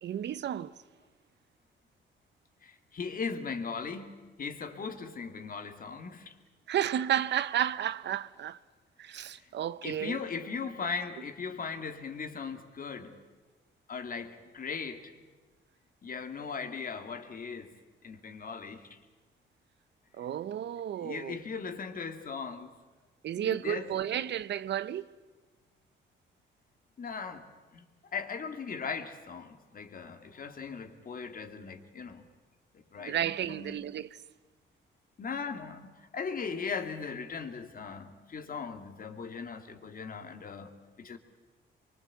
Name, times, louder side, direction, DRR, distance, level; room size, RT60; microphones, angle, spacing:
voice 1, 0.0-0.7 6.7-8.6 9.0-10.2 20.1-21.4 23.2-25.1 33.0-34.2, right 10 dB, 65° right, 0.7 m, -32 dB
voice 2, 2.6-6.4 9.2-9.5 9.8-13.2 13.9-15.1 16.0-17.7 18.0-19.0 21.0-22.7 23.4-23.9 27.0-27.5 27.7-27.8 28.1-32.3 32.7-33.8 35.2-41.2, left 5 dB, 45° left, 2.5 m, -38 dB
24.5 x 23.5 x 8.4 m
cardioid pair, 90°, 20 cm